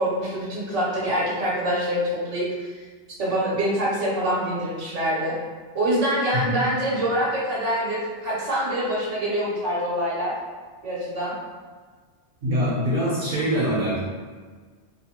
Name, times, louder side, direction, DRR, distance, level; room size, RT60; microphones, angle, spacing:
voice 1, 0.0-2.5 3.2-5.3 5.7-10.3 10.8-11.4, equal, 85° right, -6 dB, 1.2 m, -25 dB
voice 2, 12.4-14.0, equal, 55° right, -7 dB, 0.8 m, -24 dB
2.6 x 2.5 x 2.8 m, 1.5 s
omnidirectional pair, 1.2 m